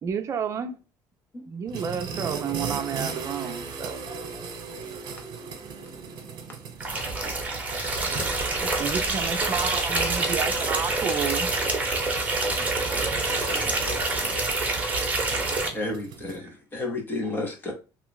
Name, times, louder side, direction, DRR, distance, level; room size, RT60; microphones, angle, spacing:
voice 1, 0.0-0.8 1.5-4.0 8.6-11.5 12.5-13.2 14.0-14.1, right 7 dB, 35° right, 0.6 m, -31 dB
sound 1, 1.7-16.4, right 6 dB, 55° right, 1.1 m, -39 dB
voice 2, 5.8-6.1 15.7-17.7, left 2 dB, 25° left, 1.0 m, -32 dB
sound 2, 6.8-15.7, right 3 dB, 15° right, 1.0 m, -26 dB
voice 3, 10.1-10.7 13.0-14.5, left 5 dB, 80° left, 1.2 m, -44 dB
3.1 x 2.4 x 3.8 m
cardioid pair, 130°, 9 cm